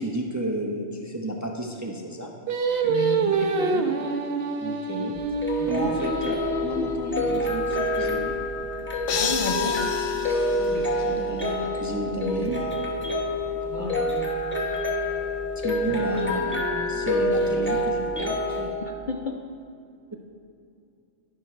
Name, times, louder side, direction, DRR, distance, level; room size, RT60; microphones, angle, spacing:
voice 1, 0.0-2.3 4.6-5.2 5.7-8.4 9.3-9.6 10.6-12.7 13.7-14.1 15.6-18.8, right 1 dB, 20° right, 1 dB, 0.6 m, -32 dB
Singing, 2.5-7.8, right 4 dB, 60° right, 0.9 m, -27 dB
voice 2, 2.8-3.9 4.4-4.5 5.8-6.1 9.2-9.9 13.6-14.0 18.8-19.4, left 5 dB, 55° left, 3 dB, 0.6 m, -33 dB
sound 1, 5.2-18.7, left 1 dB, 10° left, 1.0 m, -27 dB
sound 2, 9.1-11.4, left 7 dB, 80° left, 1.0 m, -31 dB
11.0 x 10.5 x 3.2 m, 2.5 s
omnidirectional pair, 1.2 m